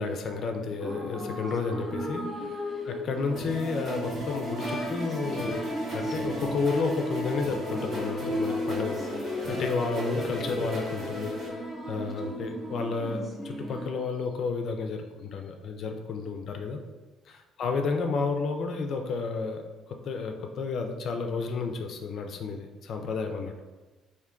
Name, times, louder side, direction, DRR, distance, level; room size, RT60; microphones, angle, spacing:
voice 1, 0.0-16.8 17.3-19.6 19.9-23.6, left 4 dB, 50° left, 5 dB, 0.4 m, -32 dB
sound 1, 0.8-13.9, equal, 10° right, 0.5 m, -35 dB
sound 2, 3.4-11.5, equal, 40° right, 0.9 m, -38 dB
sound 3, 4.6-12.8, left 1 dB, 10° left, 0.9 m, -44 dB
3.4 x 2.6 x 3.7 m, 1.2 s
cardioid pair, 140°, 0 cm